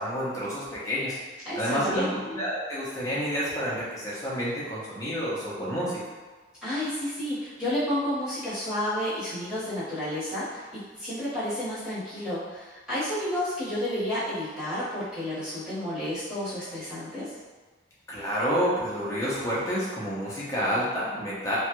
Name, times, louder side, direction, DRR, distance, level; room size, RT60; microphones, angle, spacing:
voice 1, 0.0-6.0 18.1-21.6, equal, 15° left, -8 dB, 0.8 m, -29 dB
voice 2, 1.4-2.2 6.6-17.4, left 1 dB, 5° right, -13 dB, 1.3 m, -31 dB
3.2 x 2.2 x 3.0 m, 1.4 s
head